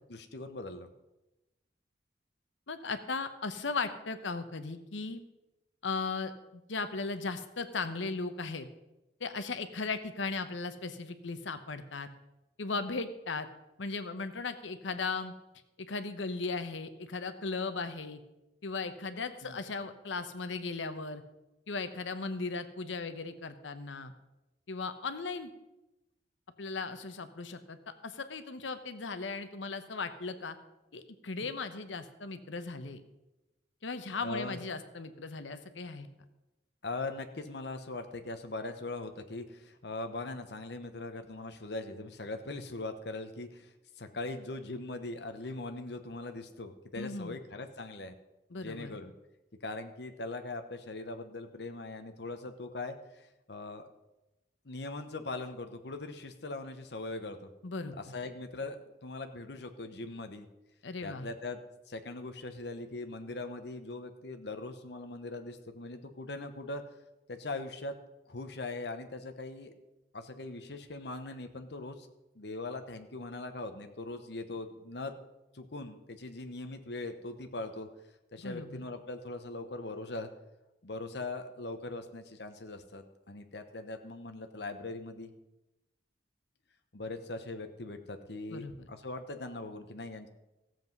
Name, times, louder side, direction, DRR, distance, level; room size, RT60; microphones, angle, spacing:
voice 1, 0.1-0.9 19.4-19.6 31.4-31.5 34.2-34.6 36.8-48.1 48.6-49.1 49.6-53.9 54.6-57.4 58.1-60.5 61.0-61.6 61.9-66.8 67.3-67.9 68.3-69.7 70.1-72.1 72.3-75.1 75.5-77.9 78.3-80.3 80.8-85.3 86.9-90.3, left 2 dB, 65° left, 7 dB, 1.0 m, -41 dB
voice 2, 2.7-5.2 5.8-8.7 9.2-12.1 12.6-13.5 13.8-15.3 15.8-18.2 18.6-21.2 21.7-24.1 24.7-25.5 26.6-27.8 28.0-30.6 30.9-33.0 33.8-36.1 47.0-47.4 48.5-48.9 57.6-58.0 60.8-61.3 78.4-78.9 88.5-88.7, left 4 dB, 90° left, 10 dB, 0.9 m, -37 dB
15.0 x 7.7 x 5.4 m, 0.98 s
head